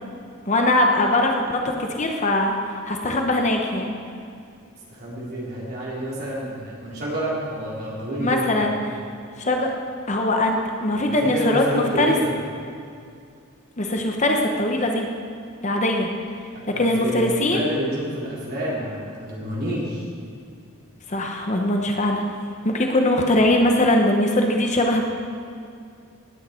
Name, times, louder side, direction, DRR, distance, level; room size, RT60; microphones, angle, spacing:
voice 1, 0.5-2.6 2.9-3.9 8.2-9.0 9.4-9.7 10.1-12.1 13.8-15.1 15.6-16.1 16.8-17.7 21.1-22.2 22.6-25.0, left 1 dB, 35° left, 2 dB, 0.9 m, -21 dB
voice 2, 4.9-8.7 11.1-12.3 16.5-20.1, equal, 45° right, -6 dB, 3.7 m, -28 dB
17.5 x 8.8 x 4.4 m, 2.4 s
head